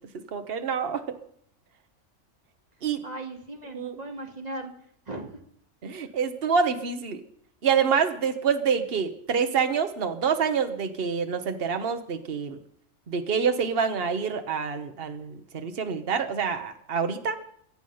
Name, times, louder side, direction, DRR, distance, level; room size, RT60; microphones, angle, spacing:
voice 1, 0.1-1.2 2.8-3.0 3.7-3.9 5.8-7.2 7.6-12.6 13.1-17.4, right 6 dB, 50° right, 8 dB, 1.3 m, -27 dB
voice 2, 3.0-4.7 5.1-5.4, right 1 dB, 30° right, 3 dB, 2.0 m, -37 dB
23.0 x 8.3 x 5.6 m, 0.67 s
omnidirectional pair, 1.3 m